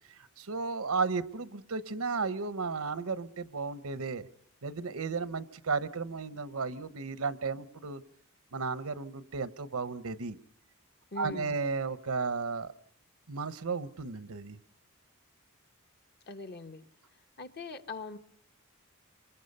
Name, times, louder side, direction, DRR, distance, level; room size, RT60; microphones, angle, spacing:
voice 1, 0.2-4.3 4.6-8.0 8.5-10.4 11.2-12.7 13.3-14.6, right 4 dB, 75° right, 14 dB, 0.9 m, -34 dB
voice 2, 11.1-11.6 16.3-16.8 17.4-18.2, left 3 dB, 45° left, 7 dB, 1.2 m, -41 dB
27.5 x 24.0 x 5.4 m, 0.63 s
head